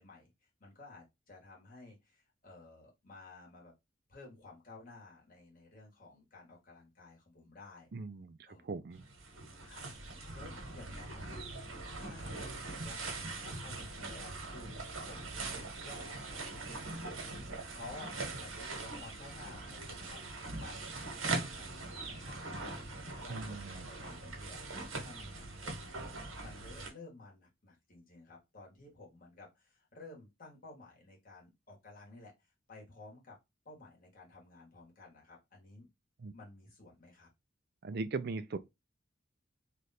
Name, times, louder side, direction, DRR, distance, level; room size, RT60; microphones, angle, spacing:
voice 1, 0.0-3.7 4.1-7.9 8.5-8.7 9.6-11.6 12.0-18.1 18.4-26.0 26.4-33.4 33.6-35.9 36.3-37.3, left 2 dB, 45° left, 1.6 m, -54 dB
voice 2, 7.9-8.4 8.6-9.0 23.3-23.9 36.2-36.3 37.8-38.6, right 3 dB, 50° right, 0.4 m, -39 dB
sound 1, 8.9-26.9, right 3 dB, 80° right, 1.3 m, -42 dB
3.2 x 2.5 x 4.1 m
head